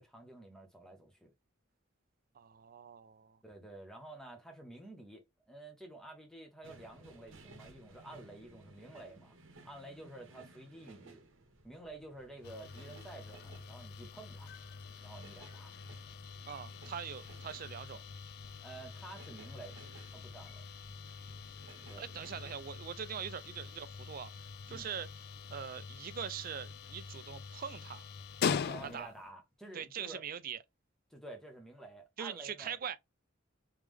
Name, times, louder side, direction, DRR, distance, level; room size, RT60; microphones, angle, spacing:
voice 1, 0.0-1.3 3.4-9.4 9.6-11.2 11.6-14.5 15.0-15.7 18.6-19.8 20.1-20.6 21.9-22.0 24.7-24.9 28.6-30.2 31.1-32.8, right 2 dB, 5° left, 0.9 m, -50 dB
voice 2, 2.4-3.4 16.5-18.0 22.0-24.3 24.7-25.1 25.5-28.0 28.8-29.1 29.7-30.6 32.2-33.0, right 7 dB, 45° right, 0.4 m, -42 dB
sound 1, 6.6-23.7, right 2 dB, 70° right, 0.9 m, -59 dB
sound 2, 12.4-29.3, left 6 dB, 50° left, 0.3 m, -43 dB
3.4 x 3.2 x 3.4 m
head